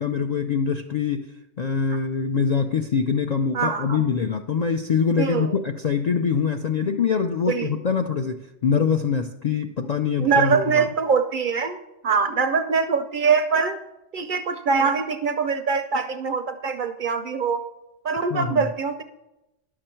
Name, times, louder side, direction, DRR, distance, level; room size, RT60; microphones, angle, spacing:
voice 1, 0.0-1.3 1.6-10.9 18.3-18.7, left 6 dB, 60° left, 5 dB, 0.4 m, -24 dB
voice 2, 3.5-4.0 5.2-5.5 7.5-7.7 10.2-13.8 14.1-17.6 18.0-19.0, right 5 dB, 60° right, 9 dB, 0.6 m, -23 dB
11.0 x 6.7 x 4.4 m, 0.94 s
omnidirectional pair, 1.2 m